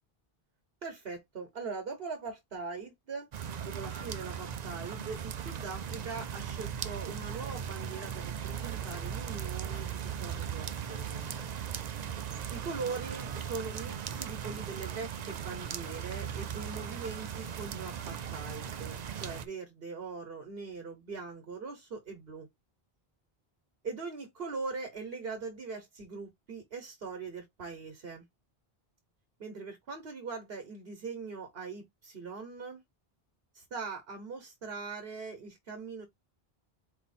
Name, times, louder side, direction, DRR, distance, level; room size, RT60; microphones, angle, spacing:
voice 1, 0.8-11.3 12.5-22.5 23.8-28.2 29.4-32.8 33.5-36.1, right 4 dB, 70° right, 1.2 m, -41 dB
sound 1, 3.3-19.5, right 8 dB, 50° right, 0.6 m, -38 dB
4.4 x 2.8 x 4.1 m
omnidirectional pair, 1.0 m